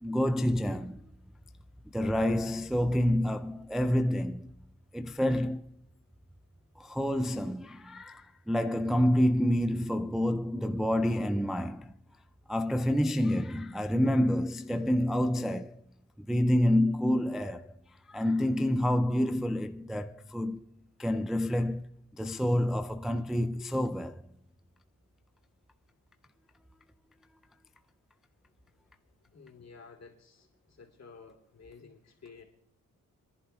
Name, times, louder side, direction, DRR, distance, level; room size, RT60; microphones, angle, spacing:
voice 1, 0.0-1.1 1.9-4.5 4.9-5.7 6.8-11.9 12.5-15.8 16.3-17.7 18.1-20.6 21.0-21.9 22.1-24.2, left 1 dB, ahead, 0.4 m, -28 dB
voice 2, 29.3-30.5 30.8-32.4, left 5 dB, 50° left, 3.0 m, -52 dB
29.5 x 11.0 x 2.3 m
cardioid pair, 75°, 34 cm